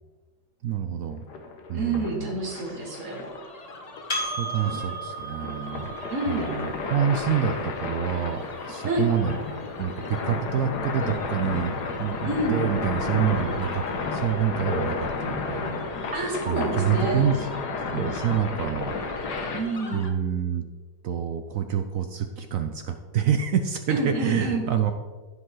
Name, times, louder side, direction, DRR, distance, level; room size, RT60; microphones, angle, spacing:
voice 1, 0.6-1.2 1.7-2.8 4.2-5.9 6.3-9.4 9.8-13.8 14.1-16.1 16.5-17.5 17.9-18.9 19.9-20.6 21.0-24.9, right 8 dB, 75° right, 7 dB, 0.7 m, -27 dB
sound 1, 1.3-19.6, left 4 dB, 65° left, 1.5 m, -32 dB
voice 2, 1.7-3.3 6.1-6.5 8.8-9.1 12.2-12.6 16.1-17.2 19.5-20.0 23.9-24.6, right 2 dB, 45° right, -2 dB, 2.2 m, -28 dB
sound 2, 2.4-20.1, left 2 dB, 45° left, 0.5 m, -45 dB
Percussion, 4.1-8.9, right 1 dB, 25° left, 2.3 m, -36 dB
14.0 x 5.2 x 3.8 m, 1.4 s
omnidirectional pair, 2.0 m